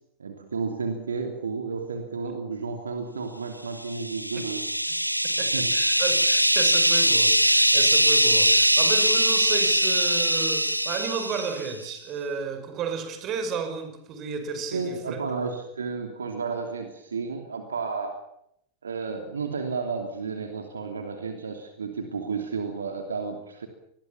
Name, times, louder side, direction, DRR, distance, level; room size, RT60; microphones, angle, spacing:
voice 1, 0.2-4.7 5.4-5.7 14.7-18.1 18.8-23.7, right 4 dB, 70° right, 3.0 m, -32 dB
sound 1, 3.9-11.7, right 1 dB, 90° right, 1.0 m, -22 dB
voice 2, 5.4-15.2, right 5 dB, 35° right, 5.7 m, -33 dB
26.5 x 21.0 x 7.3 m
figure-of-eight pair, 90°, 0 cm